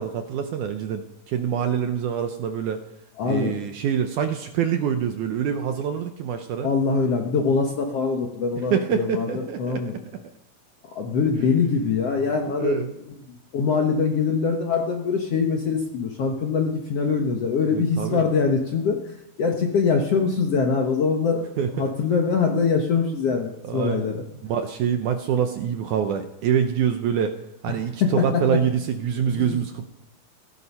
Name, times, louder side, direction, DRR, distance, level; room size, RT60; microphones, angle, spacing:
voice 1, 0.0-2.8 3.2-6.7 8.7-9.8 12.5-12.9 17.7-18.3 21.6-21.9 23.6-24.1 24.4-27.4 27.6-29.9, right 8 dB, 75° right, 7 dB, 1.9 m, -25 dB
voice 2, 3.2-3.6 6.6-9.9 10.9-12.8 13.5-19.0 19.4-21.5 21.7-24.2 28.0-28.4 29.3-29.5, left 5 dB, 60° left, 2 dB, 1.6 m, -23 dB
16.0 x 13.0 x 5.5 m, 0.83 s
omnidirectional pair, 4.3 m